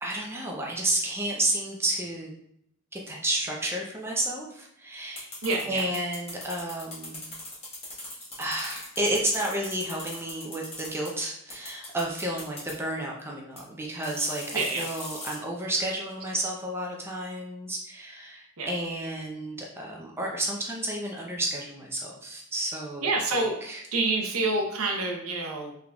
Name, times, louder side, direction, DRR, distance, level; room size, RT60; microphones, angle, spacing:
voice 1, 0.0-2.3 2.9-5.3 5.7-7.3 8.4-23.8, right 1 dB, 10° right, -2 dB, 0.5 m, -31 dB
sound 1, 5.2-11.1 11.5-12.7 13.6-13.7 14.0-15.4, left 2 dB, 25° left, 1.1 m, -40 dB
voice 2, 5.4-5.9 14.5-14.9 18.6-18.7 23.0-23.6 23.9-25.7, right 3 dB, 70° right, 1 dB, 0.7 m, -27 dB
3.7 x 3.4 x 2.3 m, 0.71 s
head